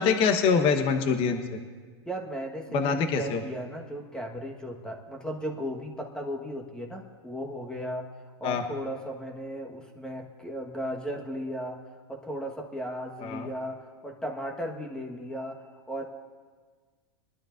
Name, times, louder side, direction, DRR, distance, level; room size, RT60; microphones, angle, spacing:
voice 1, 0.0-1.4 2.7-3.4 8.4-8.6 13.2-13.5, left 5 dB, 40° left, 5 dB, 1.2 m, -24 dB
voice 2, 2.0-8.1 8.4-11.8 12.1-13.8 14.0-16.1, equal, 5° left, 0 dB, 1.4 m, -36 dB
22.0 x 12.0 x 2.6 m, 1.5 s
hypercardioid pair, 125°, 14 cm